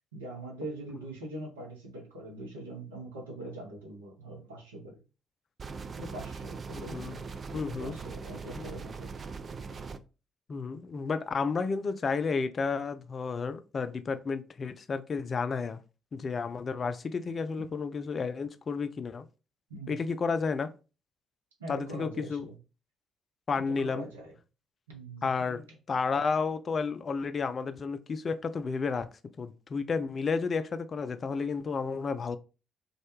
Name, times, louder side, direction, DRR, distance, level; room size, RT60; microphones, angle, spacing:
voice 1, 0.1-5.0 6.0-7.1 7.7-9.1 19.7-20.0 21.6-22.6 23.7-24.3 24.9-25.6, right 1 dB, 85° right, 0.7 m, -42 dB
sound 1, 5.6-10.0, right 5 dB, 40° right, 0.3 m, -40 dB
voice 2, 6.7-7.2 7.5-8.0 8.6-8.7 10.5-15.8 16.1-19.2 19.9-20.7 21.7-22.5 23.5-24.1 25.2-25.6 25.9-29.1 29.4-32.4, left 5 dB, 45° left, 0.3 m, -31 dB
2.3 x 2.1 x 3.0 m
figure-of-eight pair, 45°, 0 cm